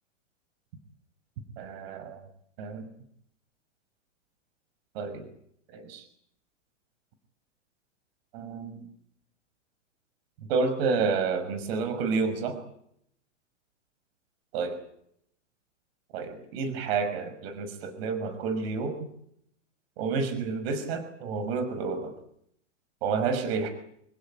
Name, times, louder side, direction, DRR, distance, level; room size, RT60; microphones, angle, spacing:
voice 1, 1.6-2.2 2.6-2.8 4.9-5.3 5.7-6.0 8.3-8.8 10.5-12.6 14.5-14.8 16.1-19.0 20.0-22.1 23.0-23.7, right 4 dB, 55° right, 9 dB, 5.8 m, -29 dB
28.0 x 17.0 x 9.2 m, 0.70 s
hypercardioid pair, 115°, 37 cm